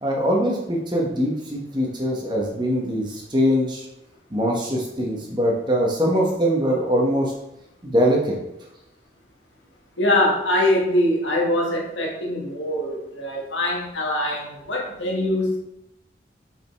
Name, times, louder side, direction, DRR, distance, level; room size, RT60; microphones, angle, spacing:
voice 1, 0.0-3.9 4.3-7.3 7.8-8.4, equal, 25° right, -1 dB, 1.1 m, -22 dB
voice 2, 10.0-15.6, left 1 dB, 90° left, -2 dB, 1.5 m, -23 dB
5.4 x 5.0 x 3.4 m, 0.84 s
head